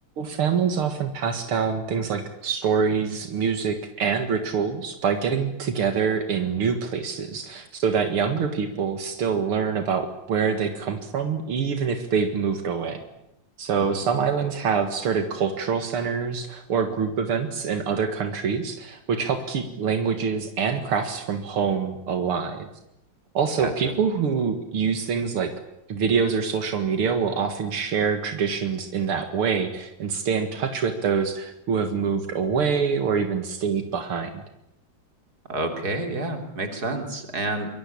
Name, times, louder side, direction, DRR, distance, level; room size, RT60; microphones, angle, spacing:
voice 1, 0.2-13.0 13.6-22.7 23.3-25.5 25.9-34.4, right 6 dB, 85° right, 7 dB, 2.7 m, -25 dB
voice 2, 35.5-37.7, right 2 dB, 45° right, 5 dB, 4.2 m, -29 dB
25.5 x 22.0 x 8.7 m, 0.83 s
omnidirectional pair, 2.3 m